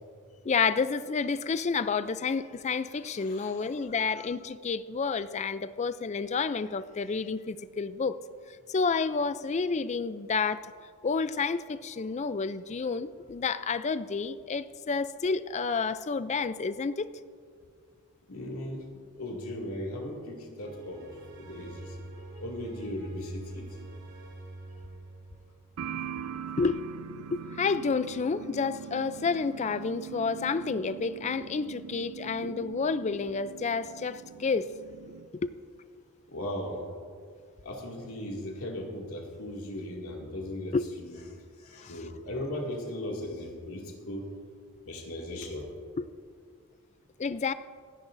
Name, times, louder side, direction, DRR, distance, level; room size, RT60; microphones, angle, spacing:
voice 1, 0.4-8.2 8.7-10.6 11.0-17.1 26.6-26.8 27.3-34.7 35.3-35.5 40.7-40.8 41.8-42.1 46.0-46.1 47.2-47.5, left 4 dB, 30° left, 0.4 m, -30 dB
voice 2, 3.2-3.8 18.3-21.0 21.4-21.9 22.4-23.6 36.3-36.9 37.6-41.2 41.6-44.3 44.9-45.7, left 1 dB, 75° left, 2.3 m, -38 dB
sound 1, 20.6-25.8, right 2 dB, 55° right, 3.3 m, -45 dB
sound 2, 25.8-35.3, right 7 dB, 80° right, 0.5 m, -42 dB
27.0 x 10.0 x 2.6 m
head